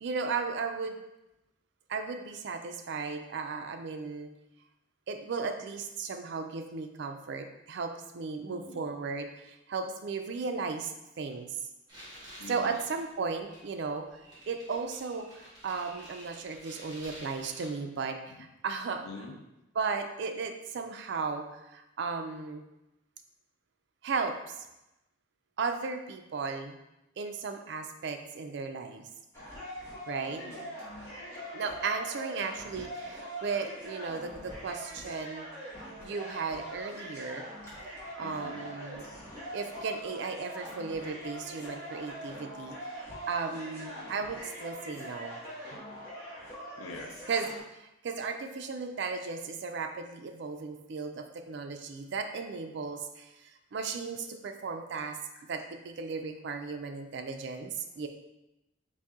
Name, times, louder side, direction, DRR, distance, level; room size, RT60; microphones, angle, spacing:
voice 1, 0.0-1.0 1.9-4.3 5.1-11.5 12.5-14.1 14.5-15.3 15.6-19.1 19.8-22.6 24.0-24.5 25.6-26.8 27.2-29.1 30.1-30.4 31.5-35.5 36.0-37.5 38.2-39.0 39.5-45.4 47.3-47.5 48.0-55.2 55.4-58.1, right 4 dB, 55° right, 6 dB, 0.4 m, -35 dB
voice 2, 8.5-8.9 12.4-12.8 19.0-19.4 30.2-30.7 38.2-38.7 46.8-47.2 55.3-55.4, left 3 dB, 80° left, 2 dB, 0.6 m, -45 dB
sound 1, 11.9-17.7, equal, 20° right, 1.5 m, -51 dB
sound 2, 29.3-47.6, equal, 15° left, 1.2 m, -43 dB
4.1 x 2.6 x 3.6 m, 0.92 s
head